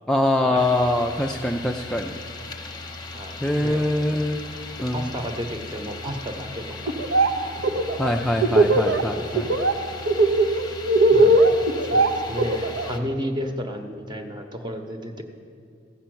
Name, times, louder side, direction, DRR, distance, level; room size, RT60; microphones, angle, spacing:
voice 1, 0.1-2.1 3.4-4.4 4.8-5.1 8.0-9.5, left 1 dB, 5° left, 2 dB, 0.3 m, -23 dB
sound 1, 0.6-13.0, left 3 dB, 25° left, 0.8 m, -38 dB
voice 2, 3.1-3.9 4.9-6.9 9.4-9.9 11.0-11.4 11.8-15.2, equal, 25° right, 4 dB, 1.0 m, -33 dB
Laughter, 6.9-7.3 7.6-9.0 9.4-9.7 10.1-12.9, right 2 dB, 80° right, 0.8 m, -18 dB
15.0 x 5.7 x 7.7 m, 2.5 s
head